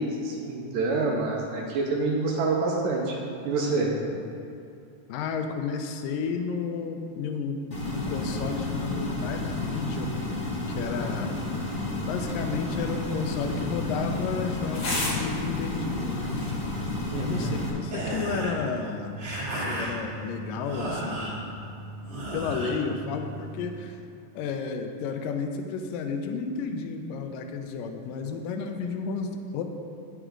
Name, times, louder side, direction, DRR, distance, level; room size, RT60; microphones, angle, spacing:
voice 1, 0.0-3.2 3.5-3.9 17.1-17.6, right 3 dB, 70° right, -1 dB, 2.2 m, -27 dB
voice 2, 3.9-4.4 5.1-7.6 7.9-10.3 10.7-11.3 12.0-16.3 17.2-19.2 19.5-21.4 22.3-24.0 24.3-29.6, left 5 dB, 80° left, 5 dB, 2.1 m, -32 dB
sound 1, 7.7-17.7, left 2 dB, 25° left, 1.8 m, -31 dB
sound 2, 12.2-17.2, left 2 dB, 55° left, 1.1 m, -37 dB
sound 3, 17.9-23.7, right 1 dB, 40° right, 3.0 m, -34 dB
9.7 x 8.1 x 3.8 m, 2.7 s
omnidirectional pair, 4.3 m